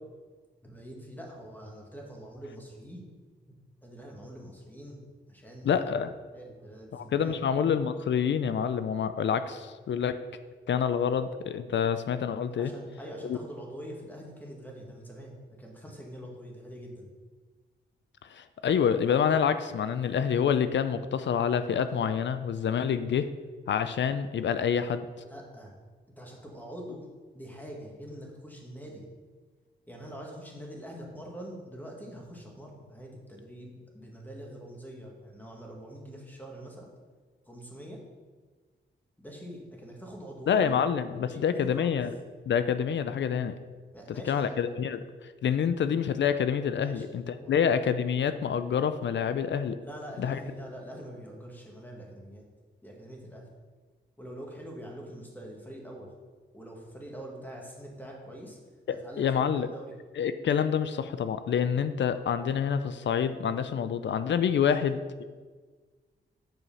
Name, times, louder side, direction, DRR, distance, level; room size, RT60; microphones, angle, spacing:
voice 1, 0.6-3.0 3.5-3.6 3.8-5.0 5.3-5.9 6.3-7.4 11.0-11.1 12.6-17.1 25.2-25.7 26.2-27.1 27.3-29.0 29.9-36.9 37.5-38.0 39.2-40.7 41.0-41.9 43.9-44.5 46.8-47.1 47.4-47.6 49.8-52.5 52.8-53.5 54.2-56.1 56.5-58.6 58.9-59.5 59.7-59.9, equal, 10° left, -1 dB, 2.0 m, -44 dB
voice 2, 5.6-6.2 6.9-10.2 10.7-12.7 13.2-13.4 18.2-23.3 23.7-25.0 40.5-42.1 42.5-43.5 44.1-45.0 45.4-49.8 50.2-50.4 58.9-59.7 60.2-65.2, left 7 dB, 70° left, 11 dB, 0.5 m, -27 dB
7.6 x 4.8 x 5.6 m, 1.4 s
cardioid pair, 70°, 20 cm